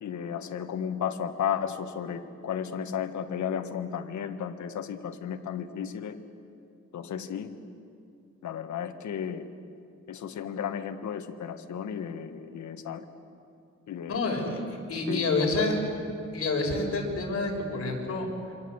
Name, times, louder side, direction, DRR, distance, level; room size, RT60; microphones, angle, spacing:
voice 1, 0.0-6.2 6.9-7.5 8.4-9.4 10.1-13.1 13.9-14.2 15.1-15.5, left 8 dB, 75° left, 7 dB, 1.7 m, -34 dB
voice 2, 14.1-14.6 14.9-15.7 16.3-18.5, left 3 dB, 50° left, 0 dB, 6.3 m, -28 dB
28.0 x 25.5 x 8.1 m, 2.5 s
wide cardioid pair, 140°, 29 cm